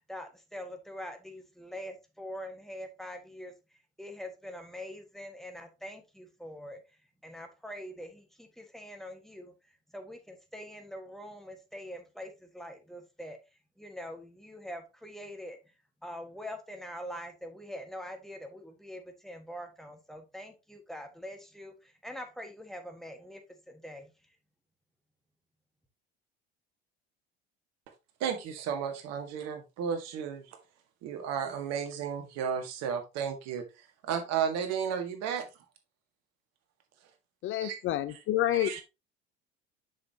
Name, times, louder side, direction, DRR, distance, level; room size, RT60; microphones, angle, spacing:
voice 1, 0.1-3.5 4.0-6.8 7.2-9.5 9.9-13.4 13.8-15.6 16.0-23.4 23.7-24.1, equal, ahead, 1.5 m, -44 dB
voice 2, 28.2-30.6 31.0-35.4 37.6-37.8 38.1-38.2 38.5-38.8, right 7 dB, 55° right, 1.6 m, -33 dB
voice 3, 37.4-38.8, left 13 dB, 40° left, 0.6 m, -29 dB
7.1 x 6.3 x 2.8 m
figure-of-eight pair, 65°, 31 cm